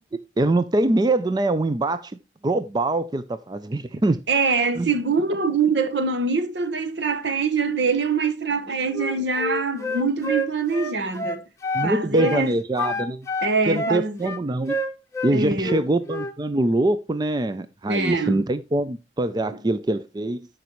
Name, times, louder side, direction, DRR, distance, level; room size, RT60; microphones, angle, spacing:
voice 1, 0.4-2.2 2.4-4.2 4.8-4.9 11.7-13.3 13.7-14.8 15.2-20.5, right 2 dB, 20° right, 0.4 m, -23 dB
voice 2, 4.3-11.4 11.8-12.5 13.4-14.3 15.3-15.9 17.9-18.4, right 4 dB, 65° right, 1.1 m, -24 dB
Wind instrument woodwind instrument, 8.9-11.9 12.2-12.4 12.8-15.3 15.6-16.3, left 1 dB, 15° left, 0.8 m, -28 dB
13.5 x 5.2 x 3.0 m
head